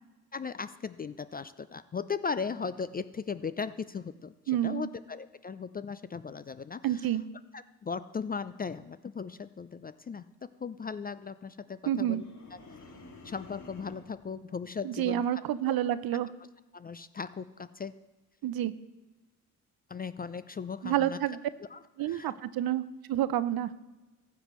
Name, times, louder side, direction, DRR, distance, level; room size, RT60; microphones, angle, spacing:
voice 1, 0.3-7.1 7.5-10.2 10.6-12.2 12.5-12.6 13.2-15.4 15.7-15.8 16.7-17.9 19.9-21.2 21.6-22.3, left 5 dB, 25° left, 14 dB, 0.4 m, -37 dB
voice 2, 4.5-4.9 6.8-7.2 11.9-12.2 14.8-16.3 18.4-18.7 20.8-21.4 22.0-22.8 23.1-23.7, right 12 dB, 55° right, 15 dB, 0.7 m, -29 dB
sound 1, 12.1-14.2, left 3 dB, 40° left, 2.3 m, -50 dB
15.0 x 8.1 x 3.1 m, 1.1 s
hypercardioid pair, 50°, 43 cm